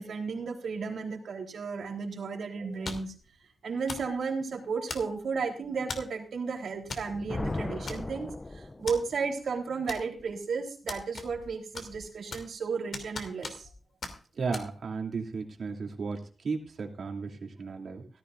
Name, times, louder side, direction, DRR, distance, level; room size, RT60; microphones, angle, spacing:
voice 1, 0.0-3.1 3.6-13.7, right 5 dB, 80° right, 1 dB, 3.6 m, -34 dB
sound 1, 2.8-3.2 3.9-4.1 4.9-5.3 5.9-6.2 6.9-7.1 7.4-7.5 7.9-8.3 8.9-9.0 9.9-10.3 10.9-11.5 11.7-12.6 12.9-13.7 14.0-14.2 14.5-14.7, left 3 dB, 60° left, 2.9 m, -39 dB
Thunder, 6.8-9.2, left 2 dB, 20° left, 0.5 m, -37 dB
voice 2, 14.4-18.1, right 4 dB, 60° right, 2 dB, 2.8 m, -35 dB
17.0 x 14.0 x 2.5 m, 0.37 s
wide cardioid pair, 140°, 0 cm